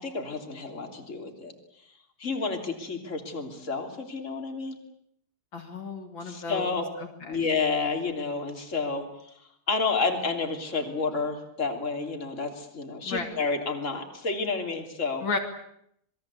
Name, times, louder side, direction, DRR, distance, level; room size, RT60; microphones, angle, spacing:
voice 1, 0.0-1.5 2.2-4.8 6.2-6.9 7.3-9.1 9.7-15.2, left 4 dB, 35° left, 4 dB, 3.6 m, -30 dB
voice 2, 5.5-6.7 7.0-7.4 13.1-13.3 15.2-15.4, left 4 dB, 65° left, 4 dB, 3.4 m, -33 dB
27.5 x 21.5 x 8.4 m, 0.72 s
omnidirectional pair, 2.3 m